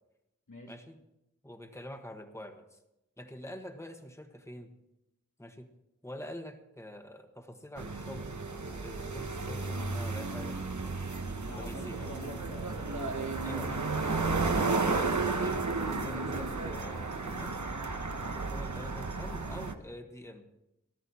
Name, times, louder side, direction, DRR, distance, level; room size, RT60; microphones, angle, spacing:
voice 1, 0.7-1.0 1.4-2.8 3.2-4.7 5.4-5.7 6.0-8.3 8.7-10.6 11.6-12.1 13.4-13.7 14.6-15.6 16.0-17.6 18.2-20.5, left 1 dB, 10° left, 5 dB, 1.4 m, -45 dB
sound 1, 7.8-19.7, right 3 dB, 70° right, 1.2 m, -33 dB
voice 2, 11.5-13.6, left 1 dB, 85° left, -1 dB, 2.8 m, -47 dB
18.5 x 12.5 x 4.3 m, 0.88 s
wide cardioid pair, 40°, 30 cm